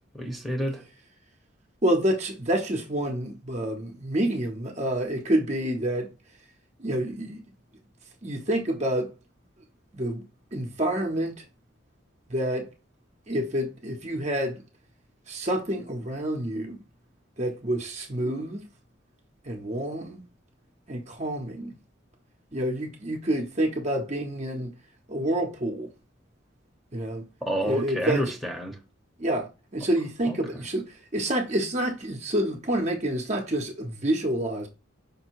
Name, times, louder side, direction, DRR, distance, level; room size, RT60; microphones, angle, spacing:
voice 1, 0.1-0.8 27.4-28.8 30.3-30.4, equal, ahead, 0.8 m, -29 dB
voice 2, 1.8-6.1 6.8-7.4 8.2-9.1 9.9-10.2 10.5-11.4 12.3-12.7 13.3-14.6 15.3-16.8 17.4-18.6 19.4-20.2 20.9-21.7 22.5-24.7 25.1-25.9 26.9-27.2 27.6-28.2 29.2-34.7, right 1 dB, 35° right, 0.7 m, -28 dB
5.2 x 2.2 x 4.4 m
head